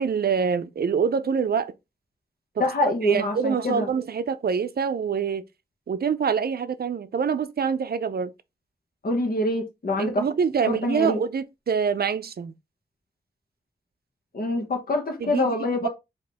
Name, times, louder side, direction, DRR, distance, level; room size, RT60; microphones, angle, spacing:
voice 1, 0.0-1.7 2.6-5.4 5.9-8.3 10.0-12.5 15.2-15.5, right 6 dB, 65° right, 0.5 m, -25 dB
voice 2, 2.6-3.9 9.0-10.2 10.6-11.2 14.3-15.9, left 1 dB, 55° left, 1.2 m, -25 dB
4.2 x 2.9 x 3.4 m
wide cardioid pair, 75°, 17 cm